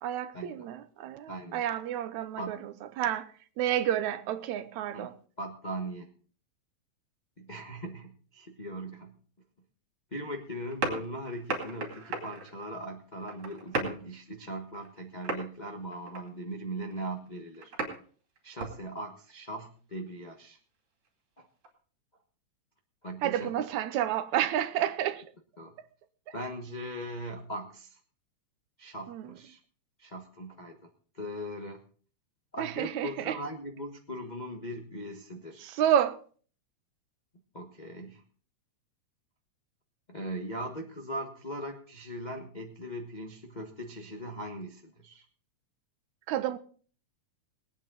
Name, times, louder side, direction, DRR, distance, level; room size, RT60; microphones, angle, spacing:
voice 1, 0.0-5.2 23.2-25.3 26.3-26.4 29.1-29.3 32.6-33.4 35.6-36.2 46.3-46.6, right 10 dB, 80° right, 2.1 m, -30 dB
voice 2, 1.3-1.6 2.4-2.5 4.9-5.1 5.4-6.1 7.4-9.2 10.1-17.7 18.4-20.6 23.0-23.5 25.6-25.7 26.3-28.0 28.8-29.6 30.0-30.9 31.1-31.8 32.5-35.8 37.5-38.2 40.1-45.2, right 1 dB, 80° left, 0.4 m, -39 dB
sound 1, 10.6-12.6 13.2-14.0 14.7-15.0 15.2-15.6 15.9-16.3 16.8-18.0 18.4-18.7 19.3-19.4 21.6-21.7, right 3 dB, 50° right, 3.4 m, -34 dB
21.5 x 8.9 x 3.9 m
omnidirectional pair, 3.3 m